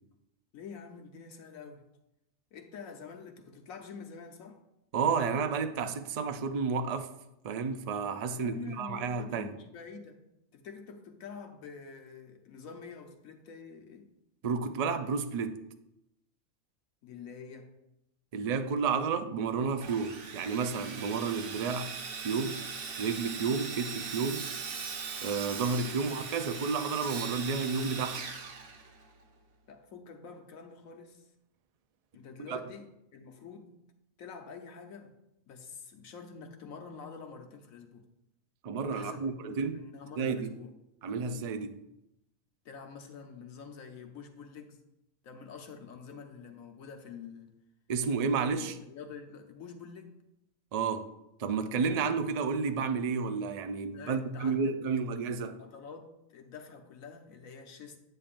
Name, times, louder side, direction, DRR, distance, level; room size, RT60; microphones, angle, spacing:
voice 1, 0.5-1.9 2.5-4.6 8.3-10.2 10.5-14.1 17.0-17.7 25.9-26.0 29.7-31.3 32.1-33.8 34.2-35.1 35.5-38.0 38.9-40.7 42.6-44.8 45.2-47.5 48.5-50.1 53.9-54.8 55.1-55.2 55.6-58.0, left 5 dB, 90° left, 1.3 m, -47 dB
voice 2, 4.9-7.1 7.4-9.5 14.4-15.6 18.3-21.9 22.2-22.6 23.0-24.5 25.2-28.2 32.5-32.6 38.6-39.8 40.2-40.5 41.0-41.8 47.9-48.7 50.7-51.1 51.4-55.6, right 5 dB, 75° right, 0.3 m, -31 dB
Sawing, 19.8-29.3, right 5 dB, 50° right, 0.9 m, -40 dB
8.8 x 8.6 x 2.5 m
omnidirectional pair, 1.4 m